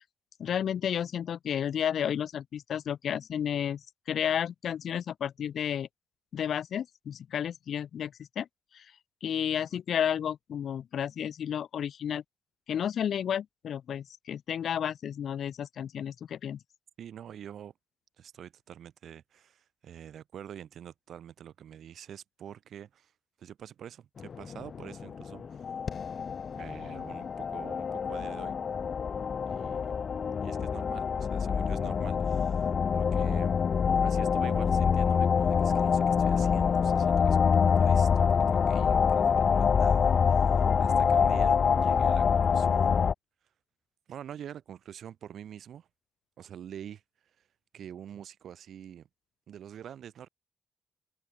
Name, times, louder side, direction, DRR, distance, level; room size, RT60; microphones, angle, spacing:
voice 1, 0.4-5.9 6.3-8.5 8.7-8.9 9.2-12.2 12.7-16.6, left 9 dB, 70° left, 3.0 m, -32 dB
voice 2, 17.0-17.7 18.2-23.1 23.4-25.6 26.5-28.6 29.5-29.9 30.4-33.5 34.0-43.1 44.1-45.9 46.4-47.0 47.7-49.1 49.5-50.3, right 9 dB, 70° right, 7.0 m, -46 dB
sound 1, 24.2-43.1, left 6 dB, 50° left, 1.2 m, -26 dB
cardioid pair, 85°, 0 cm